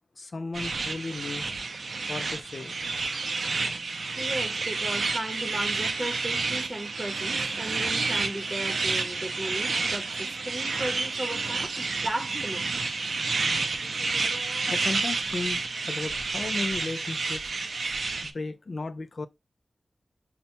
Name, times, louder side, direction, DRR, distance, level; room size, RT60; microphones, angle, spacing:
voice 1, 0.2-1.5 2.1-2.7 14.7-17.4 18.2-19.3, left 3 dB, 60° left, 0.3 m, -35 dB
sound 1, 0.5-18.3, right 4 dB, 85° right, 0.4 m, -30 dB
voice 2, 4.2-12.9, right 1 dB, 30° right, 0.8 m, -36 dB
5.5 x 2.1 x 2.8 m
wide cardioid pair, 90°, 0 cm